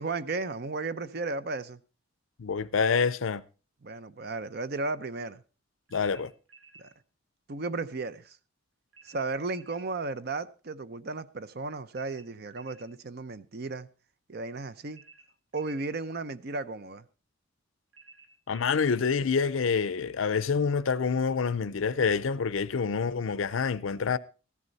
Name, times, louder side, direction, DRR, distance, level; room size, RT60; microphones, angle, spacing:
voice 1, 0.0-1.8 3.8-5.4 6.8-6.9 7.5-8.4 9.0-13.9 14.3-15.0 15.5-17.1, right 3 dB, 50° right, 0.6 m, -34 dB
voice 2, 2.4-3.4 5.9-6.3 18.5-24.2, left 5 dB, 80° left, 0.5 m, -27 dB
sound 1, 5.9-6.9 8.9-9.9 11.9-12.9 14.9-15.9 17.9-18.9, right 4 dB, 75° right, 3.7 m, -55 dB
14.5 x 11.0 x 4.0 m
head